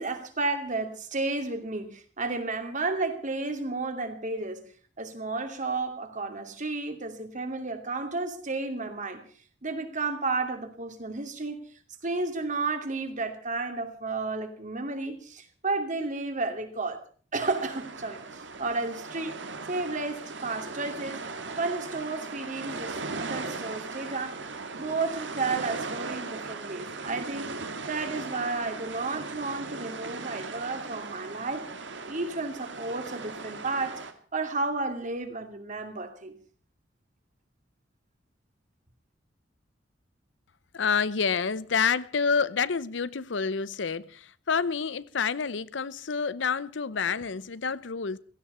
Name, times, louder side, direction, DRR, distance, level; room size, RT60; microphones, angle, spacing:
voice 1, 0.0-4.6 5.0-9.2 9.6-11.6 12.0-17.0 17.3-18.2 18.6-19.4 19.7-21.2 21.6-24.4 24.8-27.5 27.9-31.6 32.0-34.0 34.3-36.4, right 3 dB, 45° right, 2.6 m, -32 dB
sound 1, 17.4-34.1, right 3 dB, 75° right, 1.9 m, -38 dB
voice 2, 40.7-48.2, left 5 dB, 75° left, 0.7 m, -28 dB
16.5 x 15.5 x 5.6 m
head